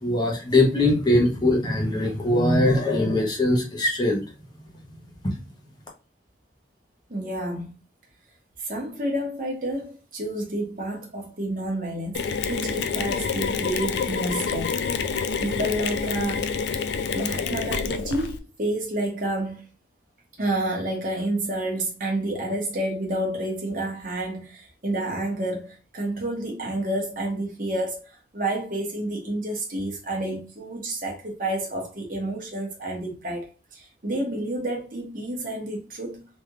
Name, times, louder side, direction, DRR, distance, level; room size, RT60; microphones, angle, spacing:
voice 1, 0.0-4.2, left 1 dB, 25° left, 0.9 m, -21 dB
voice 2, 7.1-7.7 8.6-14.8 15.1-16.6 17.1-19.6 20.4-28.0 28.3-36.3, right 1 dB, 45° right, 1.1 m, -29 dB
Mechanisms, 12.1-18.4, left 6 dB, 65° left, 0.3 m, -27 dB
3.3 x 3.0 x 2.3 m
head